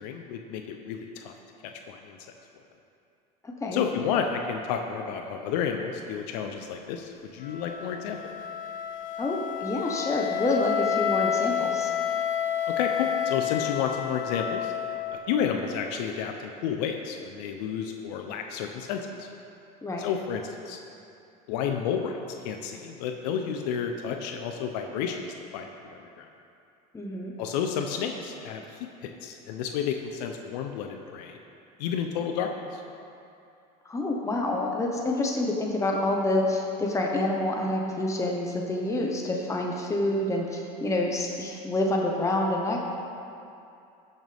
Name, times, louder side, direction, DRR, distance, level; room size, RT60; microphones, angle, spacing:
voice 1, 0.0-1.3 1.9-2.2 3.7-8.2 12.8-14.7 15.3-19.3 20.0-20.8 21.5-22.2 22.4-25.3 25.5-26.3 27.4-31.4 31.8-32.8, left 7 dB, 80° left, 4 dB, 0.7 m, -31 dB
voice 2, 3.4-3.8 9.2-11.9 19.8-20.0 26.9-27.3 33.8-42.8, left 1 dB, 15° left, -1 dB, 1.1 m, -27 dB
Wind instrument woodwind instrument, 7.4-15.4, left 9 dB, 40° left, 0.8 m, -30 dB
14.5 x 6.6 x 3.5 m, 2.6 s
supercardioid pair, 100°, 21 cm